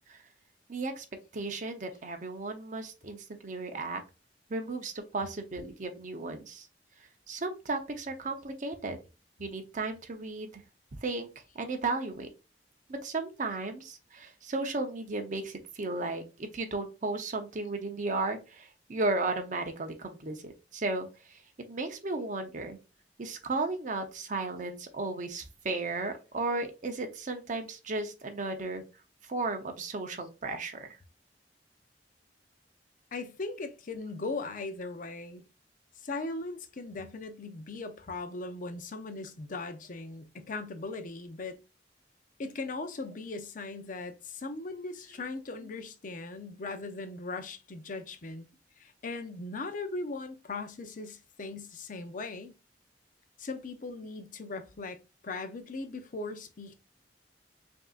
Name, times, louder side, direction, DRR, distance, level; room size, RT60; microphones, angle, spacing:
voice 1, 0.7-1.0 1.3-4.0 4.5-6.7 7.3-9.0 9.4-10.6 11.0-11.3 11.5-12.3 12.9-21.1 21.7-22.8 23.2-28.8 29.3-30.9, right 3 dB, 45° right, 0.7 m, -34 dB
voice 2, 33.1-35.4 36.0-41.6 42.4-48.5 48.8-52.5 53.4-55.0 55.2-56.7, left 3 dB, 50° left, 0.6 m, -39 dB
5.4 x 2.7 x 2.4 m
head